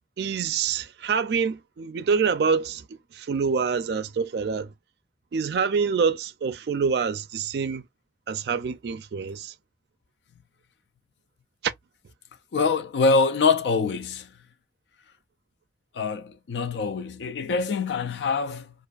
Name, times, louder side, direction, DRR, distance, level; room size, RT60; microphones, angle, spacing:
voice 1, 0.2-4.7 5.3-7.8 8.3-9.5 11.6-11.7, right 5 dB, 65° right, 0.4 m, -26 dB
voice 2, 12.5-14.3 15.9-18.7, left 4 dB, 75° left, 0.3 m, -24 dB
2.4 x 2.3 x 2.3 m
head